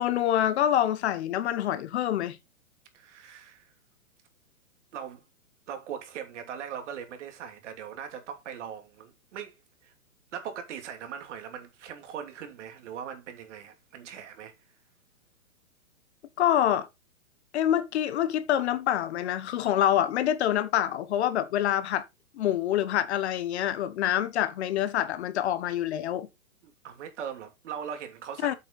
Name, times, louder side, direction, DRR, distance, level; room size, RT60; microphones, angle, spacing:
voice 1, 0.0-2.4 16.4-16.9 17.5-22.0 22.4-26.3 28.4-28.5, left 11 dB, 50° left, 1.3 m, -26 dB
voice 2, 2.9-3.7 4.9-5.2 5.7-9.5 9.8-9.9 10.3-14.5 26.6-28.6, right 8 dB, 55° right, 3.0 m, -40 dB
8.2 x 6.7 x 4.2 m
hypercardioid pair, 140°, 43 cm